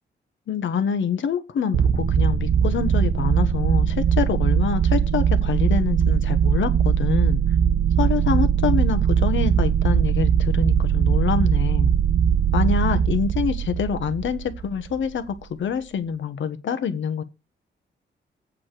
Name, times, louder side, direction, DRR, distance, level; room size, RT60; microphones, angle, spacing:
voice 1, 0.5-7.4 8.0-11.9 12.5-17.2, left 7 dB, 75° left, 1.3 m, -26 dB
sound 1, 1.7-15.1, right 8 dB, 60° right, 1.1 m, -20 dB
8.5 x 5.0 x 7.5 m
wide cardioid pair, 135°, 20 cm